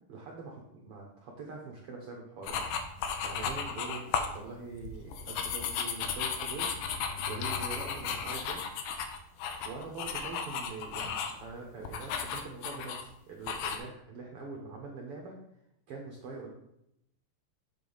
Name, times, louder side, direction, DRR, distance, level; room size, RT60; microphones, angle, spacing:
voice 1, 0.1-2.7 3.2-4.1 4.3-6.7 7.3-8.6 9.6-15.4 15.9-16.5, right 4 dB, 90° right, 0 dB, 1.2 m, -43 dB
sound 1, 2.4-4.4 4.7-11.4 11.8-13.0 13.4-13.8, left 6 dB, 75° left, 2.1 m, -34 dB
8.1 x 4.2 x 5.5 m, 0.79 s
omnidirectional pair, 4.1 m